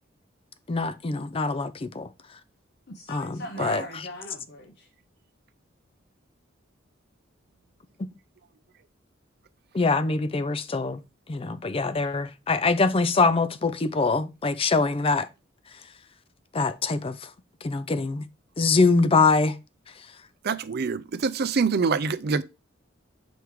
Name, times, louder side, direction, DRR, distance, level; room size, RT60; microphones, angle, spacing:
voice 1, 0.7-2.1 3.1-3.3 3.6-3.8 9.7-11.0 11.3-15.3 16.5-17.2 17.6-18.2 18.6-19.5, left 3 dB, 30° left, 0.5 m, -23 dB
voice 2, 2.9-4.9, left 1 dB, 55° left, 0.9 m, -40 dB
voice 3, 20.4-22.4, right 5 dB, 55° right, 0.5 m, -25 dB
6.1 x 3.5 x 4.7 m
head